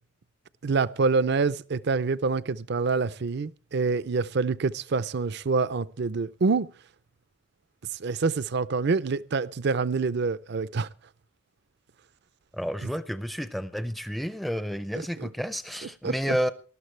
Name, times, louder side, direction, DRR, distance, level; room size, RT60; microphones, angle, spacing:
voice 1, 0.6-6.7 8.0-10.9 15.2-15.3 16.0-16.4, right 4 dB, 55° right, 0.5 m, -26 dB
voice 2, 12.5-16.5, equal, ahead, 0.5 m, -30 dB
19.5 x 12.5 x 3.2 m
head